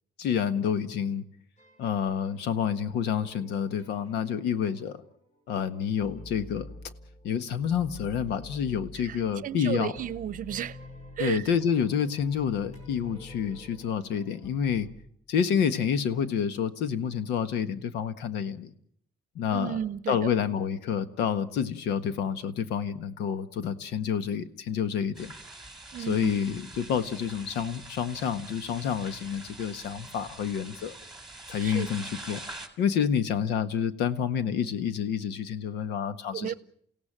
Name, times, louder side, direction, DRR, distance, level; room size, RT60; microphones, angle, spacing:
voice 1, 0.2-1.2 1.8-5.0 5.5-6.7 7.2-9.9 11.2-14.9 15.3-18.7 19.3-19.8 20.1-25.3 26.0-31.0 31.5-32.4 32.8-36.5, left 7 dB, 85° left, 1.5 m, -28 dB
sound 1, 1.6-2.8 3.2-5.1 5.5-7.4 7.7-14.9, left 2 dB, 40° left, 5.6 m, -47 dB
voice 2, 8.9-10.8 11.2-11.5 19.5-20.3 25.9-26.3 31.6-31.9 36.3-36.5, right 10 dB, 50° right, 0.8 m, -34 dB
sound 2, 25.1-32.7, right 2 dB, ahead, 3.8 m, -45 dB
29.0 x 16.5 x 7.5 m
cardioid pair, 110°, 17 cm